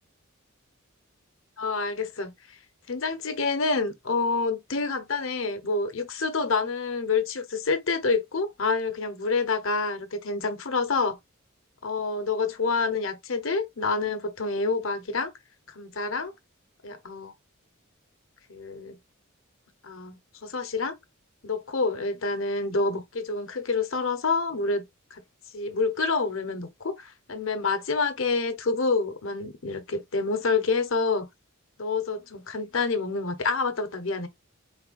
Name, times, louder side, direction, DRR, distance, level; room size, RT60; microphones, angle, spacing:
voice 1, 1.6-2.6 2.9-11.2 11.8-15.3 15.7-16.3 16.8-17.3 18.5-19.0 19.8-20.9 21.4-24.9 25.1-25.2 25.5-31.3 31.8-34.3, left 4 dB, 70° left, 1.0 m, -28 dB
4.6 x 3.9 x 2.5 m
head